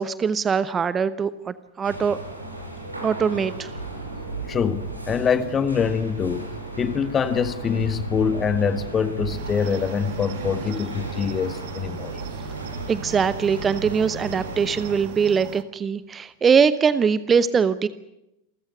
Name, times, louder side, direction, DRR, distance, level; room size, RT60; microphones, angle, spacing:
voice 1, 0.0-2.2 3.0-3.7 12.9-17.9, right 6 dB, 20° right, 16 dB, 0.9 m, -22 dB
sound 1, 1.8-15.0, right 2 dB, 85° right, 4.4 m, -34 dB
voice 2, 4.5-6.5 6.8-12.1, left 6 dB, 20° left, 13 dB, 1.5 m, -24 dB
Cricket, 9.3-15.6, right 14 dB, 50° right, 1.3 m, -40 dB
28.0 x 15.0 x 9.4 m, 0.87 s
figure-of-eight pair, 90°, 0 cm